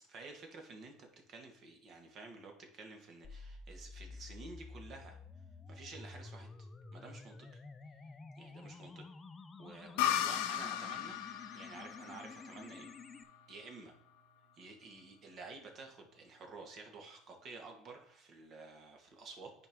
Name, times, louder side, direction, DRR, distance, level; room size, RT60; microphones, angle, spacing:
voice 1, 0.1-5.2 5.7-6.5 6.9-7.4 8.4-9.1 9.6-11.2 11.5-12.9 13.5-13.9 14.6-19.5, right 3 dB, 50° right, 3 dB, 1.5 m, -51 dB
sound 1, 3.2-13.2, left 3 dB, 30° left, 0.6 m, -51 dB
sound 2, 10.0-13.5, left 11 dB, 80° left, 0.6 m, -36 dB
9.6 x 4.5 x 3.6 m, 0.69 s
supercardioid pair, 80°, 0 cm